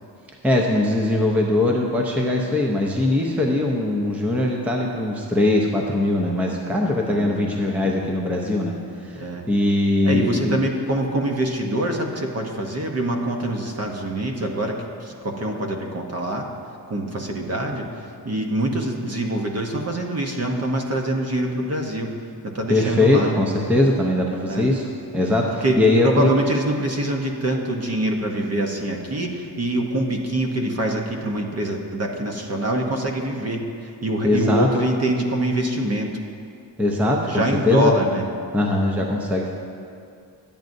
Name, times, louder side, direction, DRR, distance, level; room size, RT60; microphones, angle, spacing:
voice 1, 0.4-8.8 9.0-10.6 22.7-24.9 25.1-26.3 34.2-34.7 36.8-37.9 38.5-39.5, left 2 dB, 5° right, 0 dB, 0.6 m, -21 dB
voice 2, 6.8-7.9 9.2-9.4 10.0-16.5 16.9-22.1 22.4-23.4 24.5-24.7 25.6-36.1 37.2-38.2, right 1 dB, 35° right, 2 dB, 0.9 m, -25 dB
10.5 x 8.7 x 2.6 m, 2.4 s
cardioid pair, 115°, 43 cm